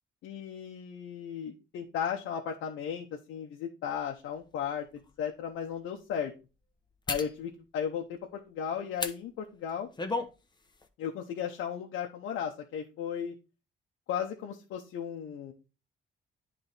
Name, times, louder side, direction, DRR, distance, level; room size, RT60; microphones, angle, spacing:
voice 1, 0.2-4.9 5.2-6.3 7.1-9.9 11.0-13.3 14.1-15.5, left 8 dB, 85° left, 1 dB, 0.8 m, -35 dB
sound 1, 4.2-4.3 5.0-5.1 7.1-7.3 8.9-9.2 9.7-10.3 10.7-10.9, left 3 dB, 20° left, 0.9 m, -33 dB
9.8 x 3.3 x 3.9 m, 0.31 s
cardioid pair, 90°, 20 cm